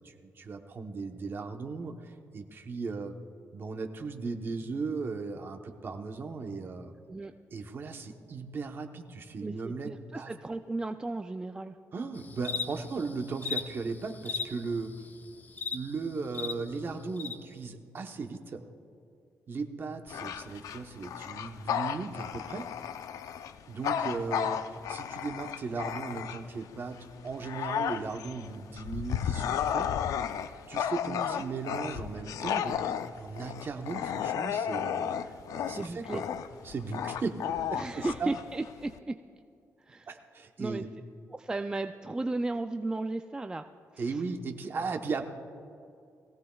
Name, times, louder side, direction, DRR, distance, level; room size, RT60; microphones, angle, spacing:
voice 1, 0.0-3.1 3.5-6.9 7.5-10.3 11.9-14.9 15.7-18.6 19.5-22.7 23.7-29.9 30.7-36.2 36.6-38.3 40.1-40.9 44.0-45.2, right 4 dB, 40° right, 5 dB, 1.0 m, -37 dB
voice 2, 9.4-11.8 31.1-31.4 35.8-36.2 37.8-39.1 39.8-40.2 40.6-40.9 41.3-43.6 43.9-44.2, right 2 dB, 15° right, 7 dB, 0.3 m, -35 dB
sound 1, 12.1-16.5 17.2-17.3, left 5 dB, 35° left, 0.6 m, -37 dB
Bark / Growling, 20.1-26.6 27.1-39.0, left 9 dB, 85° left, 0.5 m, -33 dB
21.5 x 16.0 x 2.3 m, 2.4 s
cardioid pair, 135°, 6 cm